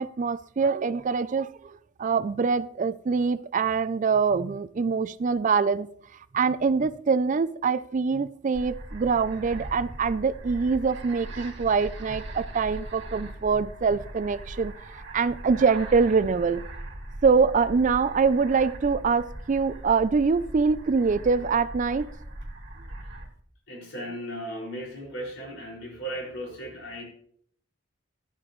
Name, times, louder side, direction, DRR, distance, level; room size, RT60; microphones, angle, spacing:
voice 1, 0.0-5.9 6.3-14.7 15.1-16.7 17.2-22.1, right 5 dB, 40° right, 15 dB, 0.4 m, -24 dB
sound 1, 8.5-23.3, right 1 dB, 60° right, 2.1 m, -40 dB
voice 2, 23.7-27.0, right 1 dB, 70° left, -2 dB, 5.4 m, -36 dB
13.5 x 12.0 x 3.1 m, 0.64 s
head